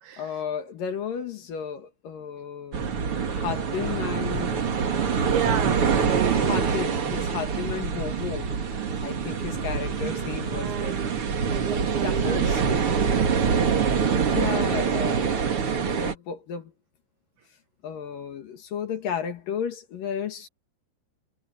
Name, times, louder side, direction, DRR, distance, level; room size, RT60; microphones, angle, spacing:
voice 1, 0.2-4.6 5.0-5.3 6.4-8.5 9.0-11.0 11.7-12.6 14.1-15.5 15.8-16.7 17.8-20.5, left 7 dB, 60° left, 3.0 m, -33 dB
sound 1, 2.7-16.1, right 6 dB, 45° right, 2.0 m, -25 dB
voice 2, 5.2-6.7 10.5-13.6, right 10 dB, 75° right, 2.5 m, -33 dB
omnidirectional pair, 5.2 m